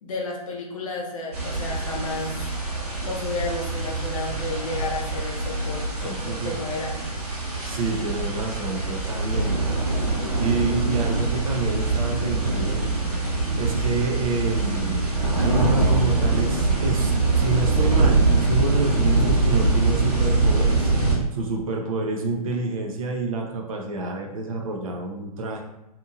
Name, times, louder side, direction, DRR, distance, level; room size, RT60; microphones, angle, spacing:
voice 1, 0.0-2.5 3.0-7.0, left 3 dB, 60° left, -1 dB, 0.8 m, -32 dB
sound 1, 1.3-21.2, right 3 dB, 80° right, 1.2 m, -23 dB
voice 2, 6.0-6.6 7.6-9.7 10.4-12.8 13.6-15.1 15.4-20.9 21.3-25.6, right 3 dB, 60° right, 2 dB, 0.6 m, -28 dB
2.8 x 2.5 x 2.5 m, 0.91 s
figure-of-eight pair, 115°, 20 cm